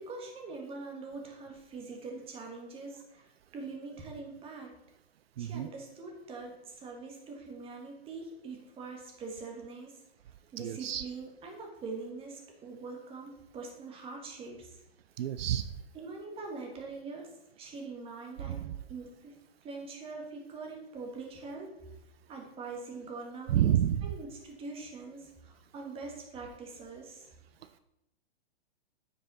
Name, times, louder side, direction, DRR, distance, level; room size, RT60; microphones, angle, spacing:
voice 1, 0.0-4.7 5.4-9.9 10.5-14.8 15.9-21.8 22.3-23.7 24.0-27.3, right 3 dB, 20° right, 1 dB, 1.5 m, -43 dB
voice 2, 5.4-5.7 10.6-11.0 15.2-15.7 18.4-18.7 23.5-24.1, right 11 dB, 70° right, 12 dB, 0.5 m, -29 dB
9.4 x 5.5 x 4.1 m, 0.85 s
hypercardioid pair, 145°, 31 cm